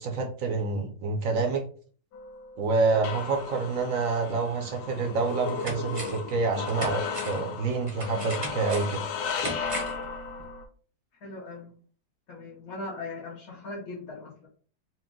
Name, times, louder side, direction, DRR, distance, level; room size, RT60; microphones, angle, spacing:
voice 1, 0.0-1.6 2.6-9.0, right 4 dB, 60° right, 4 dB, 1.0 m, -27 dB
sound 1, 2.1-10.7, left 6 dB, 80° left, 1.3 m, -35 dB
sound 2, 4.7-4.8 5.2-6.3 6.7-10.1 10.4-10.5, right 2 dB, 25° right, 0.7 m, -38 dB
voice 2, 11.2-11.7 12.3-14.5, left 2 dB, 60° left, -6 dB, 1.4 m, -39 dB
4.2 x 2.5 x 3.7 m, 0.43 s
omnidirectional pair, 1.9 m